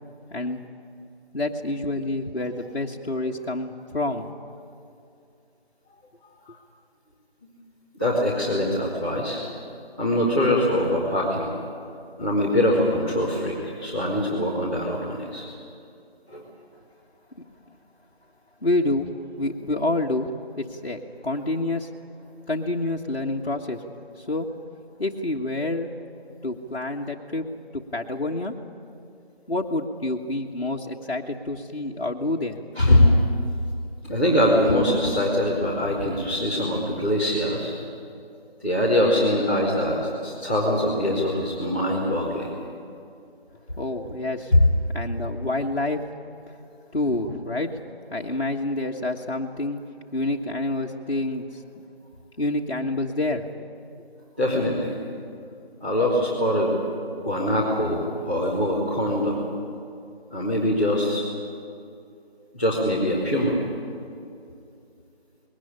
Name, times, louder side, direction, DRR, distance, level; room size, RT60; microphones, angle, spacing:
voice 1, 0.3-0.6 1.3-4.3 18.6-19.1 19.4-20.3 20.6-21.9 22.5-23.8 24.2-24.5 25.0-25.9 26.4-27.4 27.7-28.5 29.5-32.6 43.8-44.5 44.9-46.0 46.9-47.7 48.1-49.8 50.1-51.6 52.4-53.6, left 2 dB, 60° left, -2 dB, 1.5 m, -28 dB
voice 2, 8.0-9.4 10.0-11.5 12.2-15.5 16.3-16.4 32.7-33.1 34.0-37.7 38.6-42.5 44.5-44.6 54.4-54.9 55.8-56.8 57.2-59.4 60.3-61.2 62.5-63.6, left 1 dB, 10° right, -13 dB, 2.1 m, -23 dB
21.0 x 18.0 x 10.0 m, 2.6 s
figure-of-eight pair, 175°, 32 cm